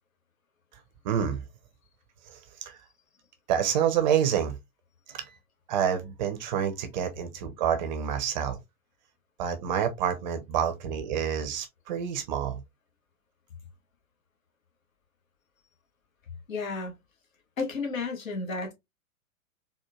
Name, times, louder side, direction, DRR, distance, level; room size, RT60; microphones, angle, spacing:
voice 1, 1.0-1.4 2.3-2.4 2.7-2.8 3.5-4.5 5.1-5.2 5.7-8.6 9.4-12.6, right 8 dB, 30° right, 0.6 m, -28 dB
voice 2, 16.5-16.9 17.6-18.7, left 4 dB, 65° left, 1.4 m, -32 dB
4.3 x 2.4 x 2.3 m
figure-of-eight pair, 110°, 44 cm